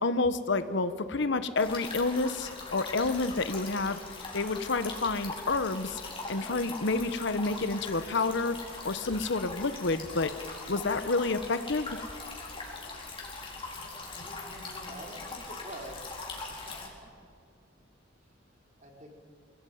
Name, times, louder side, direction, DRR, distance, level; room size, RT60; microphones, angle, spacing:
voice 1, 0.0-4.0 4.3-6.0 6.3-10.3 10.7-11.9, left 3 dB, 65° left, 12 dB, 1.1 m, -29 dB
sound 1, 1.6-16.9, left 3 dB, 25° left, 4.3 m, -41 dB
voice 2, 14.4-16.1 16.7-16.8 18.8-19.2, right 1 dB, 40° right, 1 dB, 4.7 m, -45 dB
26.0 x 17.5 x 9.4 m, 2.4 s
head